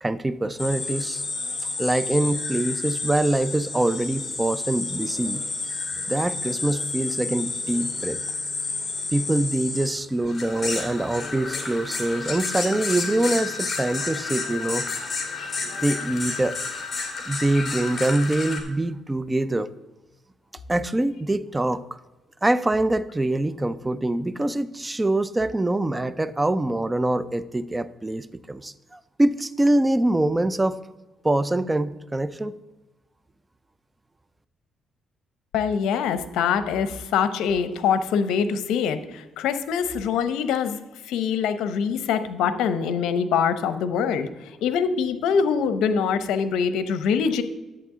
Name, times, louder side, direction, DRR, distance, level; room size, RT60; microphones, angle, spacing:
voice 1, 0.0-1.2 1.8-5.4 6.1-8.2 9.1-14.9 15.8-16.6 17.2-19.7 20.7-21.8 22.4-30.8 31.2-32.5, right 1 dB, 15° right, 16 dB, 0.5 m, -24 dB
sound 1, 0.6-18.6, left 3 dB, 30° left, 2.4 m, -31 dB
voice 2, 35.5-40.8 41.1-47.4, left 6 dB, 90° left, 11 dB, 0.7 m, -24 dB
11.0 x 8.2 x 3.7 m, 1.1 s
cardioid pair, 90°, 0 cm